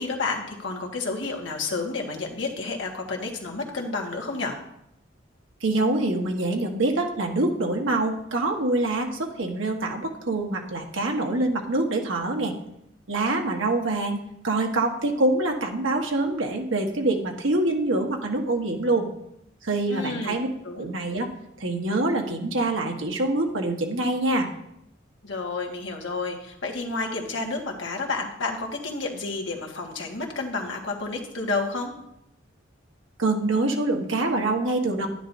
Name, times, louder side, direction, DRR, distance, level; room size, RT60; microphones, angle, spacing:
voice 1, 0.0-4.6 19.9-20.4 20.6-20.9 25.2-31.9, left 3 dB, 70° left, 0 dB, 1.6 m, -30 dB
voice 2, 5.6-12.5 13.1-19.1 19.6-20.5 20.7-21.3 21.6-24.5 33.2-35.1, right 2 dB, 85° right, 2 dB, 1.4 m, -25 dB
11.5 x 9.9 x 2.7 m, 0.79 s
head